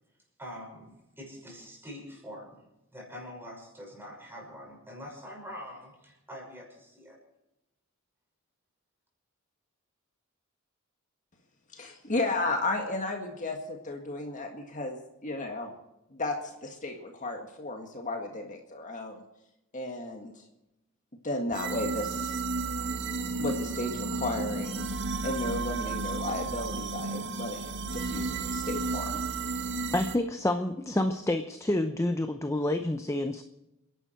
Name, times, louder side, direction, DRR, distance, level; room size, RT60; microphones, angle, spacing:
voice 1, 0.4-2.7 2.9-7.2, equal, 10° right, 0 dB, 5.9 m, -45 dB
voice 2, 11.7-15.7 16.1-19.2 19.7-20.4 21.2-22.4 23.4-24.8 25.2-29.2, left 2 dB, 40° left, 3 dB, 1.8 m, -34 dB
sound 1, 21.5-30.2, right 3 dB, 60° right, 1.1 m, -33 dB
voice 3, 29.9-33.4, left 1 dB, 15° left, 7 dB, 0.7 m, -28 dB
28.5 x 11.0 x 4.5 m, 0.91 s
head